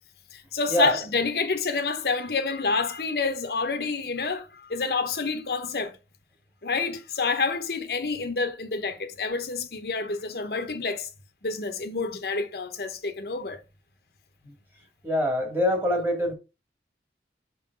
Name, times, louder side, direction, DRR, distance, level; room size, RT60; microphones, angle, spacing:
voice 1, 0.3-6.0 6.6-11.1 11.4-13.6, left 4 dB, 65° left, 0.8 m, -28 dB
voice 2, 15.0-16.3, equal, 10° right, 1.9 m, -25 dB
6.3 x 3.8 x 5.2 m
head